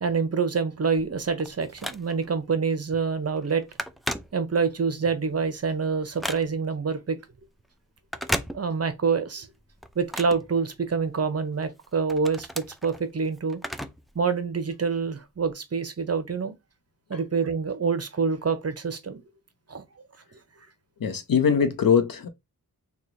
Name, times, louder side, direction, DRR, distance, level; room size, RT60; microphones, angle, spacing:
voice 1, 0.0-3.6 4.3-7.2 8.5-9.5 10.0-13.6 14.1-16.5 17.1-19.2 19.7-19.8, right 5 dB, 40° right, 0.7 m, -26 dB
Telephone, 1.0-2.4 2.9-3.1 3.4-4.9 5.3-6.8 8.0-9.1 9.4-11.2 11.6-14.1 14.4-14.5 15.4-15.5, equal, ahead, 0.3 m, -35 dB
voice 2, 21.0-22.3, left 6 dB, 65° left, 0.7 m, -22 dB
3.1 x 2.3 x 3.8 m
wide cardioid pair, 60°, 37 cm